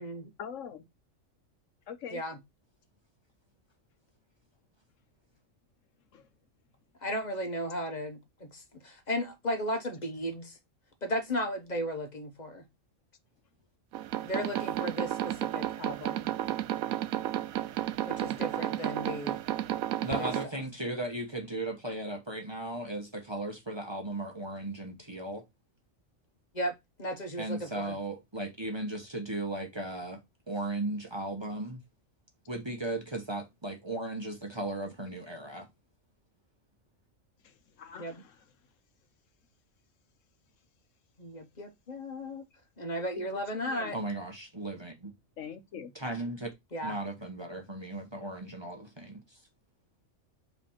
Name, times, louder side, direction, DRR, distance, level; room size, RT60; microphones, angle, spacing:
voice 1, 0.4-0.8 1.9-2.2 6.1-6.3 14.5-14.7 37.4-38.5 43.1-43.3 43.6-43.9 45.4-45.9, left 7 dB, 70° left, 1.1 m, -43 dB
voice 2, 7.0-10.6 11.0-12.6 14.2-16.3 18.1-19.4 20.1-20.3 26.5-26.7 27.0-27.9 38.0-38.1 41.2-42.4 42.8-44.0 46.7-46.9, equal, 35° left, 1.1 m, -35 dB
sound 1, 13.9-20.4, right 12 dB, 90° right, 1.0 m, -32 dB
voice 3, 20.0-25.4 27.4-30.2 30.5-31.8 32.5-35.7 43.9-45.1 45.9-46.5 46.8-49.4, right 1 dB, 20° right, 1.1 m, -36 dB
5.0 x 3.4 x 5.6 m
omnidirectional pair, 1.4 m